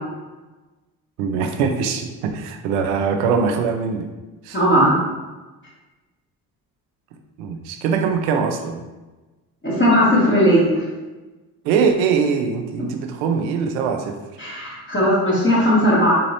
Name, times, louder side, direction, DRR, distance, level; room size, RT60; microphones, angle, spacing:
voice 1, 1.2-4.1 4.5-4.6 7.4-8.8 11.6-14.2, right 5 dB, 80° right, 5 dB, 0.6 m, -22 dB
voice 2, 4.5-5.0 9.6-10.7 14.4-16.1, equal, 25° left, -7 dB, 1.4 m, -17 dB
3.4 x 3.0 x 2.8 m, 1.2 s
hypercardioid pair, 55°, 45 cm